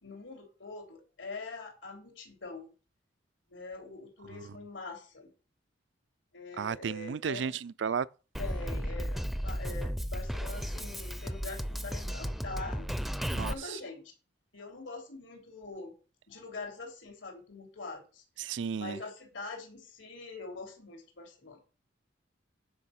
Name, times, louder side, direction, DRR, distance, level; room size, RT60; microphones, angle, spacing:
voice 1, 0.0-2.7 3.5-5.3 6.3-7.5 8.4-12.9 13.3-14.0 14.5-15.9 16.3-18.2 18.7-21.6, left 3 dB, 90° left, 3.4 m, -44 dB
voice 2, 6.6-8.1 13.3-13.5 18.4-19.0, right 6 dB, 80° right, 0.4 m, -33 dB
Drum kit, 8.3-13.5, equal, ahead, 0.4 m, -34 dB
9.6 x 5.4 x 5.9 m
head